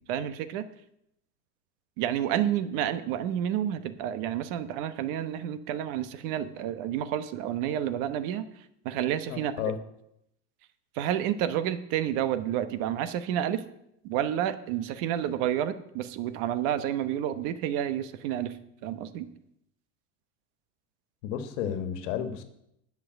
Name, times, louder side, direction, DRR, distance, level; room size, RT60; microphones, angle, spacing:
voice 1, 0.1-0.6 2.0-9.5 10.9-13.6 14.0-18.6 18.8-19.3, right 10 dB, 60° right, 12 dB, 1.1 m, -30 dB
voice 2, 9.3-9.8 21.2-22.4, left 9 dB, 70° left, 9 dB, 1.6 m, -32 dB
10.5 x 5.9 x 8.8 m, 0.78 s
supercardioid pair, 130°, 36 cm